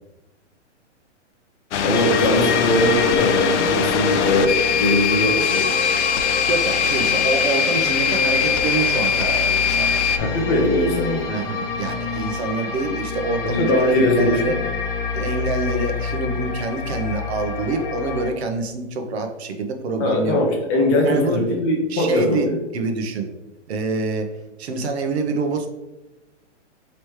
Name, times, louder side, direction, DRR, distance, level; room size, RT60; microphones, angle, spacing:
sound 1, 1.7-10.2, left 7 dB, 75° left, 0.5 m, -21 dB
voice 1, 1.8-5.7 10.2-11.3 13.5-14.6 20.0-22.6, left 1 dB, 15° left, 0 dB, 0.5 m, -20 dB
sound 2, 1.9-18.3, left 4 dB, 40° left, 1.4 m, -27 dB
voice 2, 6.5-9.9 11.3-13.7 14.2-14.5 15.1-20.4 21.0-21.4 21.9-23.3 23.7-24.3 24.6-25.7, right 3 dB, 60° right, 5 dB, 0.8 m, -26 dB
3.1 x 3.1 x 4.6 m, 1.0 s
hypercardioid pair, 155°, 36 cm